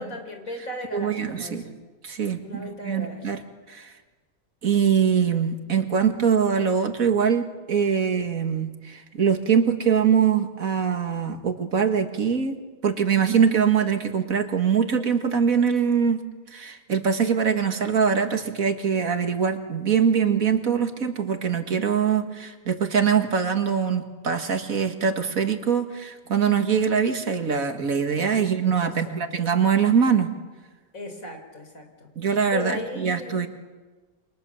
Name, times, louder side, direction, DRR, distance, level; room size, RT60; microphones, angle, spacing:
voice 1, 0.0-1.8 2.4-3.3 28.3-28.4 28.8-29.2 30.9-32.1 32.5-33.5, left 1 dB, 75° left, 5 dB, 4.3 m, -36 dB
voice 2, 0.9-1.6 2.0-3.4 3.7-3.9 4.6-12.6 12.8-16.2 16.5-30.3 32.2-33.5, right 7 dB, 80° right, 6 dB, 2.3 m, -23 dB
29.0 x 25.0 x 7.2 m, 1.3 s
omnidirectional pair, 1.4 m